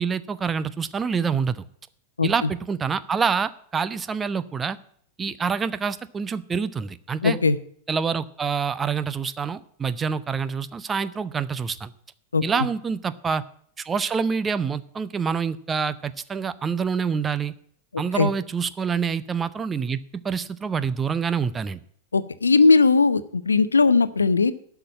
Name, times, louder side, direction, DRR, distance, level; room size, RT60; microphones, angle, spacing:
voice 1, 0.0-1.6 2.2-4.8 5.2-7.4 7.9-11.9 12.4-13.4 13.8-17.5 18.0-20.0 20.2-21.8, right 6 dB, 20° right, 14 dB, 0.6 m, -26 dB
voice 2, 7.2-7.6 12.3-12.4 18.2-18.3 22.1-24.5, left 4 dB, 75° left, 15 dB, 0.6 m, -18 dB
11.5 x 5.9 x 8.4 m, 0.63 s
figure-of-eight pair, 90°, 0 cm